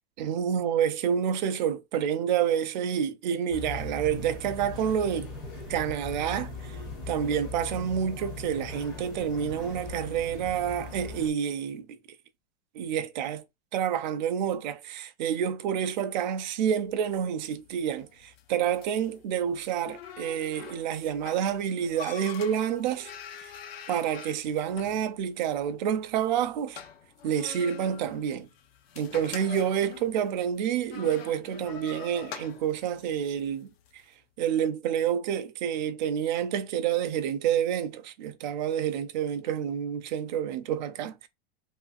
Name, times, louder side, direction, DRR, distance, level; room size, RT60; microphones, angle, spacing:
voice 1, 0.2-5.3 5.7-6.8 7.1-12.0 12.7-13.4 13.7-23.1 23.4-23.5 23.9-26.8 27.2-28.5 29.0-34.0 34.4-41.3, right 9 dB, 50° right, 0.4 m, -28 dB
sound 1, 3.5-11.3, left 2 dB, 15° left, 0.4 m, -39 dB
sound 2, 16.8-34.0, left 7 dB, 90° left, 0.7 m, -46 dB
3.0 x 2.5 x 2.4 m
supercardioid pair, 175°, 29 cm